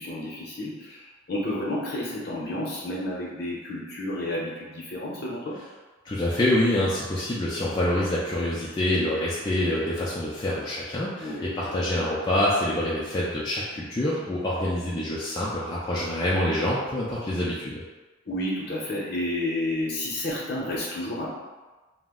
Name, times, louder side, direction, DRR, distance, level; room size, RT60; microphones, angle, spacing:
voice 1, 0.0-5.6 11.2-11.8 18.3-21.3, left 1 dB, 55° left, -4 dB, 0.7 m, -31 dB
voice 2, 6.1-17.8, left 1 dB, 20° left, -7 dB, 0.3 m, -26 dB
2.4 x 2.0 x 3.5 m, 1.2 s
head